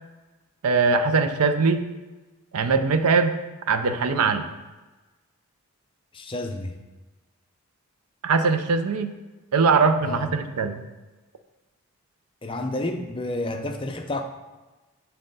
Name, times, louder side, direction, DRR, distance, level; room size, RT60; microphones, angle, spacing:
voice 1, 0.6-1.8 2.5-3.3 3.7-4.5 8.2-9.1 9.5-10.8, right 4 dB, 85° right, 9 dB, 0.5 m, -21 dB
voice 2, 6.1-6.8 10.0-10.3 12.4-14.2, left 2 dB, 25° left, 4 dB, 0.4 m, -30 dB
7.6 x 4.2 x 3.9 m, 1.2 s
head